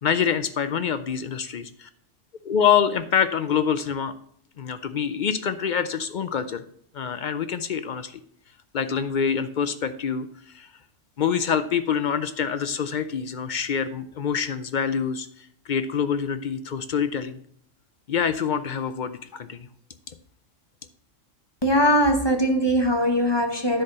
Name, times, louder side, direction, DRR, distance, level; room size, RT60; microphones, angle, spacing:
voice 1, 0.0-1.9 2.4-4.1 4.6-6.6 6.9-8.2 8.7-10.3 10.5-10.7 11.2-15.3 15.7-17.4 18.1-19.7, left 7 dB, 65° left, 0.5 m, -25 dB
voice 2, 21.6-23.8, equal, 25° left, 0.9 m, -21 dB
10.0 x 4.3 x 6.5 m
omnidirectional pair, 1.3 m